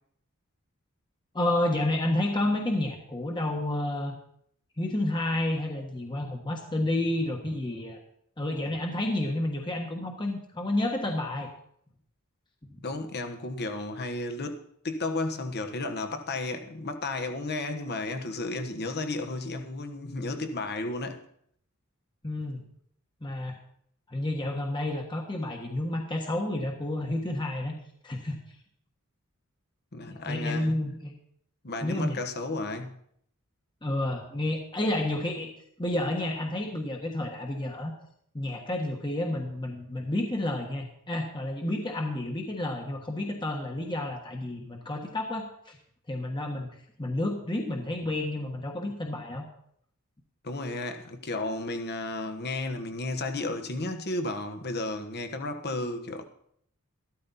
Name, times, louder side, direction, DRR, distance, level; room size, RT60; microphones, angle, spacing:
voice 1, 1.3-4.1 4.8-8.0 8.4-11.5 12.7-12.8 22.2-22.6 23.2-23.6 24.1-27.8 28.0-28.4 30.1-31.1 31.8-32.2 33.8-35.5 35.8-37.9 38.3-45.8 46.1-46.7 47.0-49.5, left 1 dB, 20° left, 1.4 m, -30 dB
voice 2, 12.8-21.2 29.9-30.8 31.6-33.0 50.4-56.2, left 2 dB, 50° left, 1.3 m, -33 dB
13.5 x 13.0 x 4.2 m
head